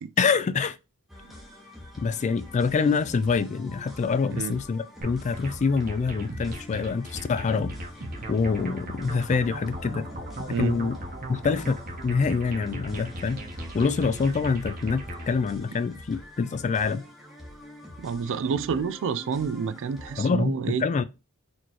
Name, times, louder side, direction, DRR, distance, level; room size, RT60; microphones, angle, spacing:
voice 1, 0.2-0.8 2.0-7.7 8.3-10.0 10.6-11.0 11.3-11.8 12.0-13.4 13.7-17.0 20.2-20.5 20.8-21.0, left 5 dB, 35° left, 0.3 m, -25 dB
sound 1, 1.1-20.3, left 1 dB, ahead, 0.9 m, -46 dB
sound 2, 5.0-15.3, right 1 dB, 40° right, 0.9 m, -38 dB
voice 2, 10.5-10.8 18.0-20.8, right 6 dB, 60° right, 0.3 m, -28 dB
4.2 x 3.1 x 2.8 m
head